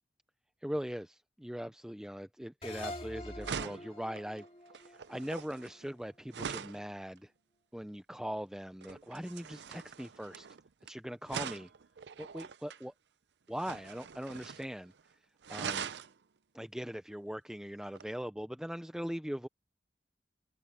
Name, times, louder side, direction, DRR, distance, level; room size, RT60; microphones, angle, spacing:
voice 1, 0.6-4.5 4.7-7.3 7.7-10.5 10.9-11.7 12.2-12.9 13.5-14.9 15.5-15.9 16.5-19.5, equal, 5° right, 0.5 m, -40 dB
sound 1, 2.6-5.9, left 1 dB, 35° left, 2.4 m, -46 dB
sound 2, 2.8-3.0 3.4-6.8 8.8-10.9 11.3-12.8 13.5-14.7 15.0-15.1 15.4-16.1 18.0-18.1, right 7 dB, 85° right, 0.6 m, -42 dB
head